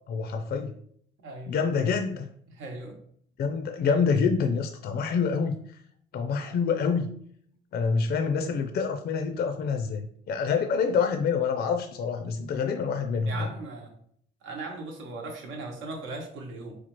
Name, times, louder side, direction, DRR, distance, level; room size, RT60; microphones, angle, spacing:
voice 1, 0.1-0.7 1.5-2.3 3.4-5.8 6.1-7.1 7.7-13.5, left 5 dB, 55° left, 5 dB, 0.4 m, -27 dB
voice 2, 1.2-1.5 2.5-3.0 13.3-13.9 14.4-16.8, right 3 dB, 80° right, 2 dB, 0.9 m, -38 dB
4.3 x 2.4 x 2.9 m, 0.64 s
cardioid pair, 90°, 20 cm